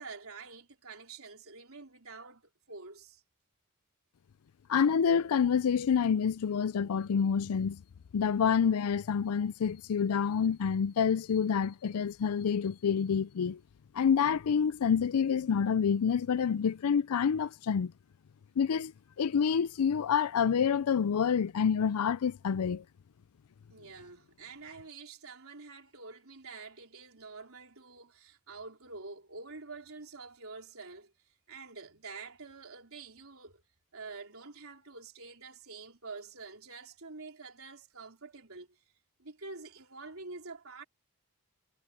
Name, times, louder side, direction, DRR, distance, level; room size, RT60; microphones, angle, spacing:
voice 1, 0.0-3.2 23.7-33.6 33.9-38.8 39.2-40.8, right 4 dB, 70° right, 4.4 m, -47 dB
voice 2, 4.7-7.8 8.1-13.6 13.9-17.9 18.6-18.9 19.2-22.8, left 7 dB, 85° left, 0.4 m, -27 dB
head